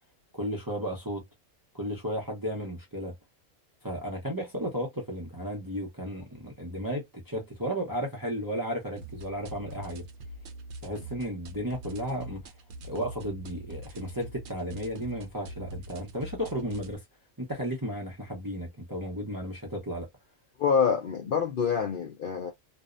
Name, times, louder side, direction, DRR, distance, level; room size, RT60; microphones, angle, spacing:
voice 1, 0.3-1.2 1.7-3.1 3.8-10.0 10.8-12.5 12.8-17.0 17.4-20.1, equal, 25° right, 0.5 m, -34 dB
sound 1, 9.0-17.0, right 1 dB, 65° right, 0.8 m, -43 dB
voice 2, 20.6-22.5, left 6 dB, 60° left, 0.6 m, -26 dB
2.6 x 2.0 x 2.3 m
omnidirectional pair, 1.3 m